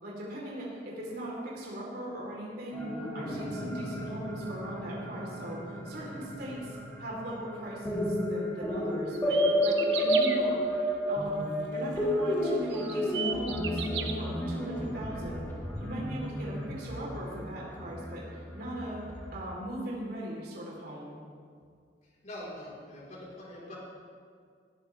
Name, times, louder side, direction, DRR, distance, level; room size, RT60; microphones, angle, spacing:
voice 1, 0.0-2.8 3.1-10.6 11.1-13.8 14.1-15.5 15.8-18.3 18.5-19.0 19.3-21.2, right 1 dB, 60° right, -4 dB, 3.9 m, -39 dB
sound 1, 2.7-19.4, equal, 15° left, 2.3 m, -32 dB
sound 2, 9.1-10.4 12.1-12.2 12.7-14.1, right 8 dB, 75° right, 1.2 m, -34 dB
voice 2, 22.2-23.8, left 1 dB, 45° left, -5 dB, 4.5 m, -43 dB
20.0 x 12.5 x 3.5 m, 2.1 s
head